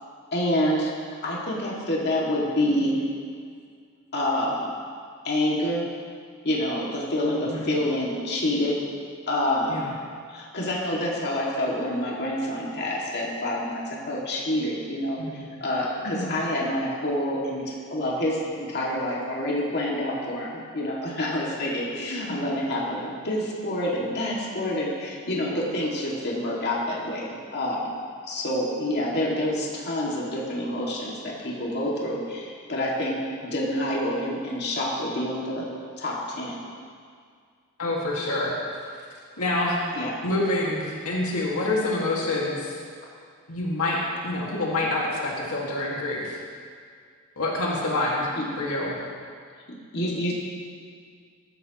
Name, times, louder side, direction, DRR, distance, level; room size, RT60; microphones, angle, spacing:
voice 1, 0.3-0.9 1.2-3.0 4.1-4.7 5.2-5.9 6.4-8.8 9.3-9.9 10.3-13.8 14.1-15.2 15.6-27.9 28.3-33.2 33.4-35.7 36.0-36.6 39.9-40.1 48.4-48.5 49.9-50.3, left 1 dB, 50° left, -4 dB, 2.1 m, -27 dB
voice 2, 7.2-7.7 9.7-9.9 15.2-15.5 16.1-16.4 22.0-22.5 37.8-38.5 38.8-38.9 39.4-39.8 40.2-42.7 43.5-46.4 47.4-48.3 48.6-49.0, left 2 dB, 85° left, -4 dB, 2.0 m, -27 dB
15.0 x 12.0 x 3.0 m, 2.1 s
head